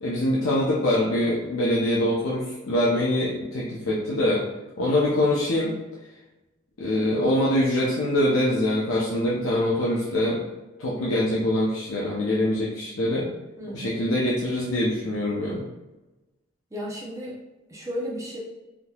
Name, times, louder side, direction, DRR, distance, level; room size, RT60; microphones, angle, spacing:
voice 1, 0.0-4.4 4.8-5.7 6.8-10.4 10.8-13.3 13.7-15.6, left 1 dB, 75° left, -5 dB, 0.6 m, -24 dB
voice 2, 13.6-14.0 16.7-17.4 17.7-18.4, equal, 15° right, -5 dB, 0.6 m, -34 dB
3.5 x 2.8 x 2.3 m, 1.1 s
head